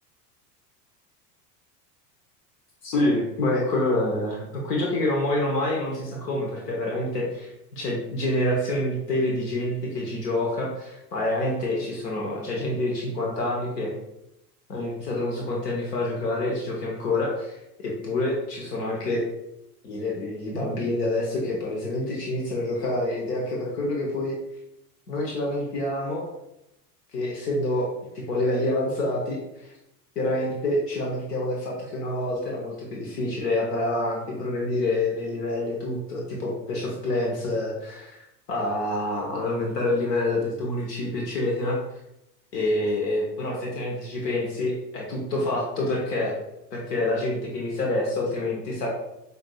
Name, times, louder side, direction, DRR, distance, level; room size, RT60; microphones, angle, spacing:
voice 1, 2.8-14.0 14.7-17.6 17.8-19.3 19.8-24.3 25.1-26.3 27.1-29.7 30.2-41.8 42.5-46.4 46.7-48.9, left 1 dB, 80° left, -2 dB, 1.1 m, -27 dB
5.8 x 2.7 x 2.3 m, 0.87 s
hypercardioid pair, 90°, 48 cm